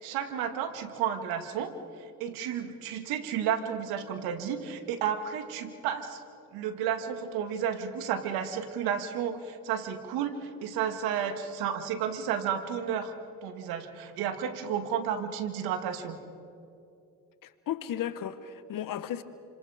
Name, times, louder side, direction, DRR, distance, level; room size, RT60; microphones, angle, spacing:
voice 1, 0.0-6.2 6.5-13.1 13.4-16.2, right 8 dB, 85° right, 8 dB, 1.9 m, -32 dB
voice 2, 17.4-19.2, left 10 dB, 65° left, 13 dB, 1.2 m, -35 dB
29.0 x 25.5 x 5.0 m, 2.7 s
supercardioid pair, 75°, 36 cm